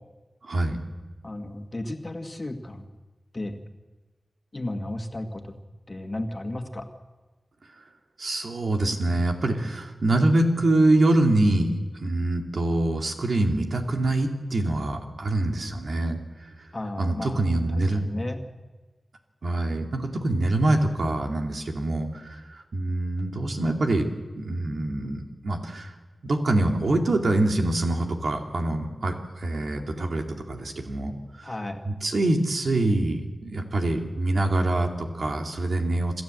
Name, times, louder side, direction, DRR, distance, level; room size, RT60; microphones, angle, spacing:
voice 1, 0.4-0.8 8.2-11.7 12.0-16.2 17.0-18.1 19.4-24.1 24.4-25.9 26.2-31.1 31.8-36.2, right 2 dB, 70° right, 2 dB, 2.5 m, -25 dB
voice 2, 1.2-2.8 3.3-3.6 4.5-5.5 5.9-6.9 16.7-18.4 31.4-31.8, left 1 dB, 35° left, 4 dB, 1.9 m, -34 dB
27.0 x 12.5 x 7.8 m, 1.3 s
wide cardioid pair, 80°, 0 cm